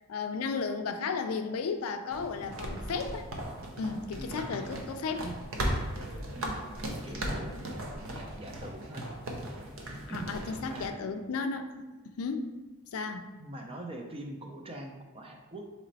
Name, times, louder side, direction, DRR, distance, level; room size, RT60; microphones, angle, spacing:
voice 1, 0.1-3.3 3.8-5.3 10.1-12.5 12.9-13.3, left 4 dB, 75° left, 7 dB, 0.4 m, -34 dB
sound 1, 2.1-10.9, right 1 dB, 65° right, 0.7 m, -37 dB
voice 2, 6.3-6.7 7.0-9.1 10.1-10.3 10.6-11.0 13.4-15.7, right 1 dB, 25° right, 2 dB, 0.5 m, -43 dB
4.2 x 3.1 x 3.9 m, 1.2 s
head